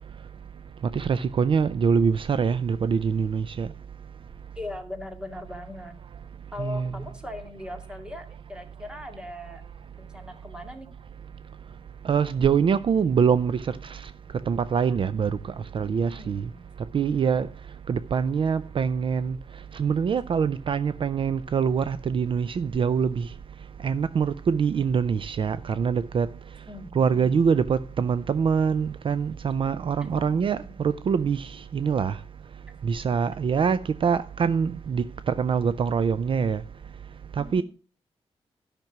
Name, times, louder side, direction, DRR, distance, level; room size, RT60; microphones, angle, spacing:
voice 1, 0.8-3.7 6.6-6.9 12.0-14.1 14.5-16.5 16.9-17.5 17.9-19.4 19.7-23.3 23.8-26.3 26.9-32.2 32.8-36.6 37.4-37.6, right 6 dB, 50° right, 0.4 m, -24 dB
voice 2, 4.6-5.9 6.5-9.6 10.0-10.9 16.0-16.7 26.5-27.4 30.0-30.7 37.4-37.6, left 2 dB, 10° right, 2.2 m, -40 dB
12.0 x 6.0 x 5.9 m
wide cardioid pair, 120°, 11 cm